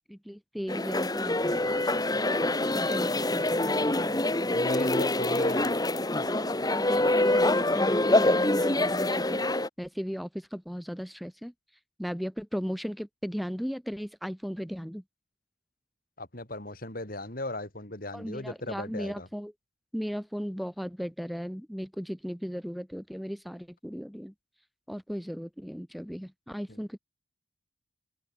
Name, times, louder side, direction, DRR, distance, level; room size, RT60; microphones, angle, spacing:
voice 1, 0.1-2.0 2.7-4.6 6.6-9.4 9.8-11.5 12.0-15.0 18.1-19.5 19.9-24.3 24.9-27.0, equal, ahead, 2.9 m, -36 dB
sound 1, 0.7-9.7, left 1 dB, 20° left, 1.7 m, -25 dB
voice 2, 4.5-5.7 16.2-19.3 26.7-26.8, left 1 dB, 45° left, 3.9 m, -37 dB
open air
head